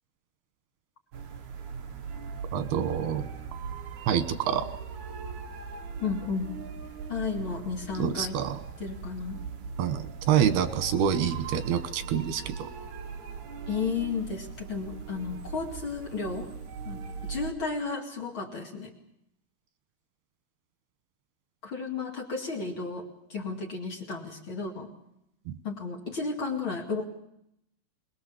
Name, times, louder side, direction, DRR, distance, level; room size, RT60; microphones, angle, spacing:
sound 1, 1.1-17.5, right 6 dB, 55° right, 2.8 m, -40 dB
voice 1, 2.5-3.3 4.1-4.7 8.0-8.6 9.8-12.7, right 8 dB, 90° right, 10 dB, 3.3 m, -27 dB
voice 2, 6.0-6.5 7.1-8.4 8.8-9.4 13.7-16.5 16.8-18.9 21.6-24.9 25.6-27.0, left 4 dB, 40° left, 1 dB, 2.6 m, -33 dB
23.0 x 21.5 x 7.1 m, 0.79 s
omnidirectional pair, 4.4 m